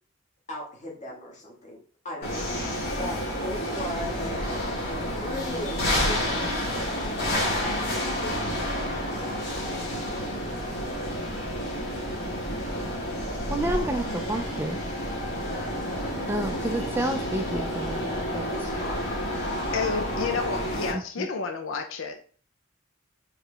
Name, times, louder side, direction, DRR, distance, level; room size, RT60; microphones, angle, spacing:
voice 1, 0.5-1.8 2.0-4.6 5.1-9.2 18.5-19.0, left 1 dB, 35° left, -2 dB, 1.6 m, -39 dB
sound 1, 2.2-20.9, equal, 55° left, 1.9 m, -30 dB
voice 2, 13.5-14.8 16.3-18.5 20.9-21.3, right 1 dB, 10° right, 5 dB, 0.3 m, -30 dB
voice 3, 19.7-22.3, left 5 dB, 75° left, 6 dB, 0.6 m, -30 dB
4.7 x 3.1 x 3.3 m, 0.42 s
head